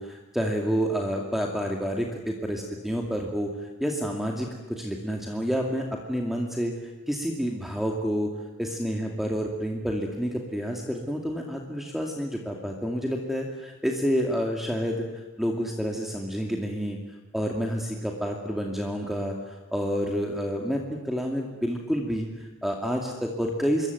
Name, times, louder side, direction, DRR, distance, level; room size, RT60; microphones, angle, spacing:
voice 1, 0.0-8.3 8.6-17.0 17.3-23.9, equal, ahead, 1 dB, 2.4 m, -29 dB
27.0 x 22.0 x 9.3 m, 1.2 s
head